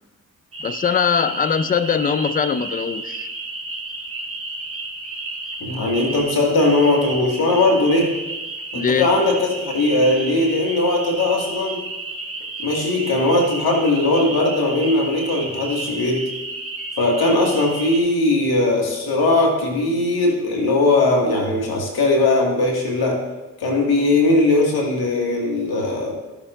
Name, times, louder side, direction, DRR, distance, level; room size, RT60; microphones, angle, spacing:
sound 1, 0.5-18.0, right 2 dB, 30° right, 2.2 m, -32 dB
voice 1, 0.6-3.3 8.7-9.1, left 7 dB, 20° left, 0.5 m, -21 dB
voice 2, 5.6-8.2 8.7-11.9 12.6-16.3 17.0-23.3 23.6-26.1, left 2 dB, 60° left, 2.0 m, -19 dB
13.5 x 7.0 x 2.6 m
hypercardioid pair, 45°, 41 cm